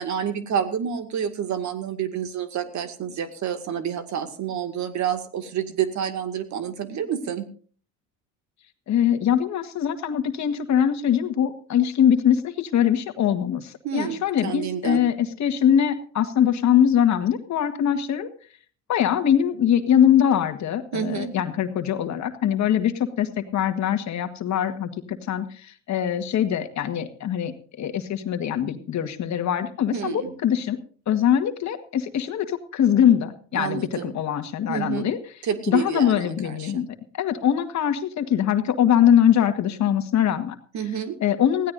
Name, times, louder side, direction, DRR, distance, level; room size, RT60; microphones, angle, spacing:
voice 1, 0.0-7.4 13.8-15.0 20.9-21.3 29.9-30.3 33.5-34.1 34.7-35.1 35.4-36.8 40.7-41.1, right 8 dB, 50° right, 8 dB, 2.2 m, -29 dB
voice 2, 8.9-18.3 18.9-30.8 31.1-35.2 35.7-36.9 37.1-40.5 41.2-41.7, left 9 dB, 50° left, 8 dB, 1.7 m, -22 dB
20.5 x 16.0 x 2.7 m, 0.43 s
supercardioid pair, 75°, 36 cm